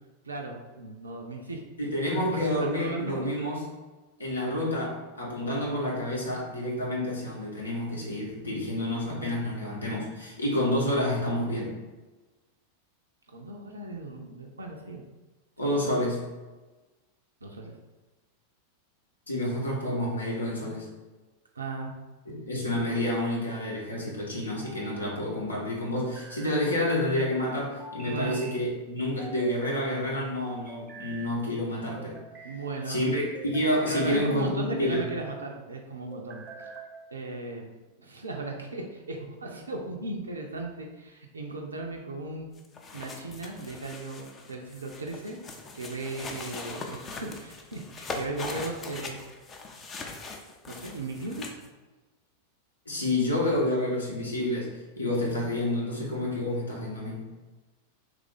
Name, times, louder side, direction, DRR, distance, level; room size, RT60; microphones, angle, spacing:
voice 1, 0.2-1.6 2.1-3.3 13.3-15.0 15.6-15.8 17.4-17.7 21.6-21.9 24.5-24.7 28.0-28.4 32.4-33.1 33.9-36.7 37.1-37.7 38.0-42.5 42.9-45.4 45.7-49.2 50.7-51.5, right 2 dB, 75° right, 0 dB, 0.4 m, -36 dB
voice 2, 1.8-3.7 4.2-11.8 15.6-16.3 19.3-20.9 22.3-32.2 32.9-35.1 52.9-57.3, left 1 dB, 75° left, -3 dB, 0.8 m, -29 dB
sound 1, 22.3-23.0 24.3-25.1 25.9-26.7 27.8-28.6 29.2-29.8 30.5-31.3 32.0-32.6 33.3-34.3 34.8-35.3 36.1-36.9, right 4 dB, 25° right, 0.6 m, -45 dB
sound 2, 42.6-51.7, left 3 dB, 20° left, 0.4 m, -41 dB
3.0 x 2.5 x 3.7 m, 1.2 s
figure-of-eight pair, 90°, 0 cm